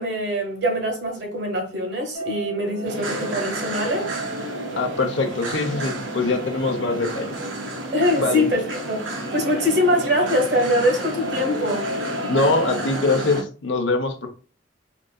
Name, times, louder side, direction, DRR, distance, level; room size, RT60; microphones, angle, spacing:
voice 1, 0.0-4.1 7.9-11.9, left 1 dB, 60° right, 1.0 m, -23 dB
sound 1, 2.1-13.1, right 1 dB, 40° left, 0.9 m, -37 dB
sound 2, 2.8-13.4, right 1 dB, 90° right, 0.9 m, -31 dB
voice 2, 4.7-7.3 8.2-8.4 12.3-14.3, left 3 dB, 75° left, 0.7 m, -23 dB
3.8 x 2.5 x 2.2 m
head